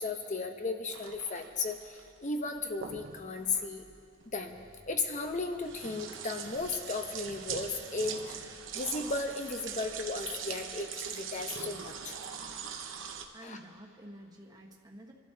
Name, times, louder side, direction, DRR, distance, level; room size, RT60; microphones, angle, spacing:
voice 1, 0.0-3.9 4.3-4.6 4.9-12.2 13.4-13.6, left 3 dB, 40° left, 5 dB, 0.9 m, -35 dB
sound 1, 0.9-13.3, right 7 dB, 80° right, 0.9 m, -42 dB
voice 2, 13.3-15.1, right 1 dB, 20° right, 0 dB, 1.4 m, -49 dB
27.0 x 11.5 x 2.9 m, 2.2 s
head